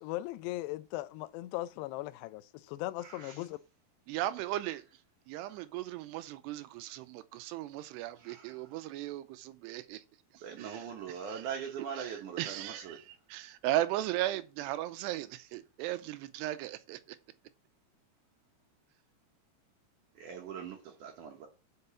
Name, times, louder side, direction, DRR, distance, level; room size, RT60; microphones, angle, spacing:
voice 1, 0.0-3.6, left 17 dB, 85° left, 2.7 m, -38 dB
voice 2, 3.0-3.5 5.4-5.6 8.2-8.8 10.4-13.0 20.2-21.5, right 7 dB, 70° right, 2.0 m, -42 dB
voice 3, 4.1-4.8 5.3-10.0 10.3-11.5 11.9-17.2, right 14 dB, 90° right, 2.7 m, -37 dB
6.7 x 5.6 x 6.8 m
omnidirectional pair, 4.8 m